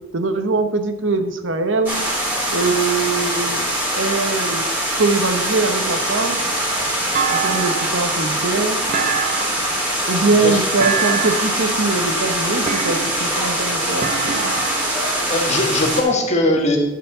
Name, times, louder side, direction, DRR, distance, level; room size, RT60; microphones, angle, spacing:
voice 1, 0.1-2.0 2.5-3.7 3.9-4.6 5.0-6.4 7.3-8.8 10.1-14.5, right 3 dB, 85° right, 8 dB, 1.0 m, -22 dB
sound 1, 1.9-16.0, right 1 dB, 10° right, 3.3 m, -22 dB
Thump thud, 7.1-8.1 8.9-9.8 10.8-11.6 12.7-13.4 14.0-15.0, right 7 dB, 40° right, 0.7 m, -25 dB
voice 2, 15.3-16.8, left 2 dB, 35° left, 2 dB, 1.7 m, -19 dB
11.5 x 4.9 x 6.7 m, 1.0 s
head